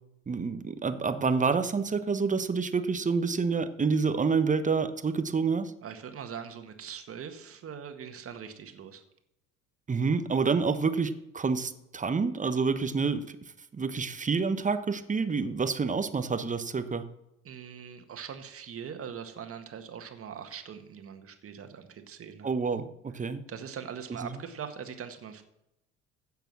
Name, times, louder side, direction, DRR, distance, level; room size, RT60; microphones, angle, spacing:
voice 1, 0.3-5.7 9.9-13.2 13.7-17.0 22.4-23.4 24.2-24.3, right 5 dB, 20° right, 11 dB, 1.1 m, -28 dB
voice 2, 5.8-9.0 17.4-22.5 23.5-25.4, right 7 dB, 40° right, 7 dB, 1.9 m, -42 dB
15.5 x 6.9 x 6.2 m, 0.85 s
figure-of-eight pair, 60°, 36 cm